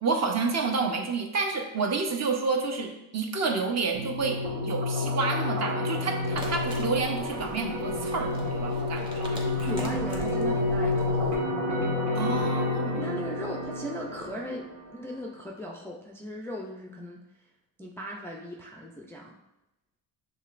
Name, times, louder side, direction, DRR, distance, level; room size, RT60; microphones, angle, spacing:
voice 1, 0.0-9.9 12.1-13.2, right 4 dB, 40° right, 3 dB, 0.8 m, -30 dB
sound 1, 3.9-14.9, left 2 dB, 85° right, 1.6 m, -29 dB
sound 2, 6.3-11.4, equal, 10° right, 1.0 m, -42 dB
voice 2, 9.5-11.4 13.0-17.2 17.8-19.3, left 1 dB, 5° left, -2 dB, 0.3 m, -38 dB
6.4 x 3.2 x 2.4 m, 0.91 s
cardioid pair, 115°, 40 cm